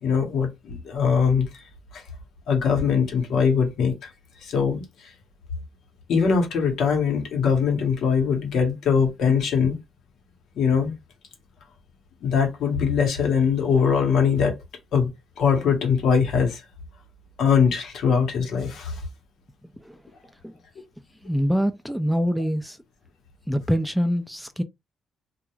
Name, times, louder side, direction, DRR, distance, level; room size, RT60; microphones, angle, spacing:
voice 1, 0.0-1.5 1.9-2.0 2.5-3.9 4.4-5.1 6.1-9.8 10.6-10.9 12.2-14.5 14.9-15.1 15.4-16.6 17.4-19.0, left 6 dB, 75° left, 1.0 m, -22 dB
voice 2, 21.2-22.8 23.5-24.6, equal, ahead, 0.3 m, -25 dB
2.4 x 2.2 x 3.0 m
cardioid pair, 90°, 0 cm